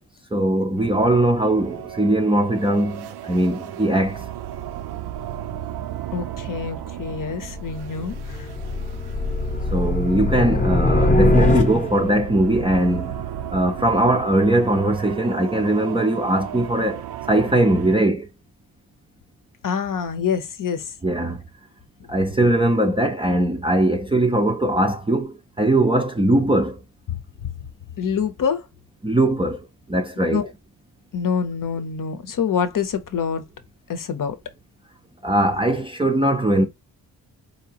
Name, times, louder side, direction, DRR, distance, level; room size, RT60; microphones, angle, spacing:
voice 1, 0.3-4.3 9.7-13.2 13.5-18.3 21.0-21.4 22.1-26.8 29.0-29.6 29.9-30.4 35.2-36.7, right 1 dB, 15° right, 0.4 m, -20 dB
sound 1, 0.8-18.0, right 11 dB, 85° right, 0.5 m, -35 dB
voice 2, 6.1-8.5 19.6-20.9 22.0-22.1 27.1-27.2 28.0-28.7 30.2-30.5 31.1-33.4 33.9-34.4, left 6 dB, 55° left, 0.7 m, -26 dB
sound 2, 6.9-12.2, left 2 dB, 20° left, 0.7 m, -22 dB
4.4 x 2.8 x 2.8 m
wide cardioid pair, 175°, 38 cm